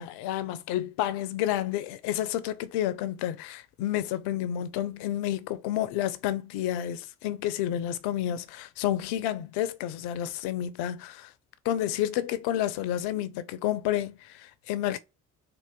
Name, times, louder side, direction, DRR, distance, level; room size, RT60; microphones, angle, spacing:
voice 1, 0.0-11.3 11.6-15.0, left 12 dB, 65° left, 0.6 m, -30 dB
3.8 x 2.5 x 3.6 m
figure-of-eight pair, 45°, 42 cm